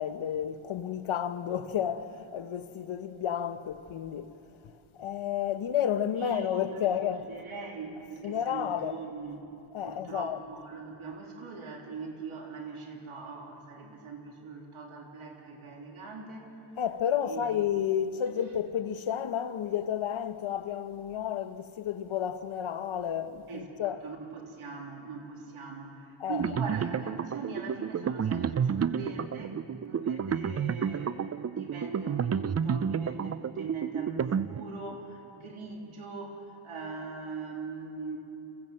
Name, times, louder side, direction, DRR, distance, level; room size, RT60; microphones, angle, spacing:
voice 1, 0.0-4.3 4.9-7.2 8.2-9.0 9.7-10.4 16.8-24.0 26.2-26.4, left 9 dB, 75° left, 1.0 m, -31 dB
voice 2, 6.2-6.9 7.2-9.4 9.8-16.5 17.2-17.6 23.5-29.6 29.8-38.2, right 4 dB, 85° right, 3.3 m, -41 dB
sound 1, 26.4-35.0, right 7 dB, 35° right, 0.4 m, -31 dB
26.0 x 15.5 x 7.7 m
cardioid pair, 90°, 48 cm